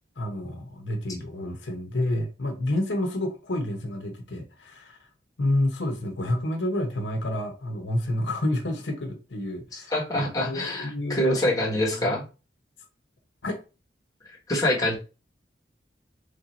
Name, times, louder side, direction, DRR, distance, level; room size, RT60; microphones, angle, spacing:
voice 1, 0.2-5.0 5.4-11.4 12.0-12.2 13.4-13.6, left 1 dB, 90° left, 0.8 m, -29 dB
voice 2, 9.7-12.2 14.5-14.9, left 1 dB, 20° left, 1.2 m, -25 dB
3.3 x 2.7 x 4.0 m
head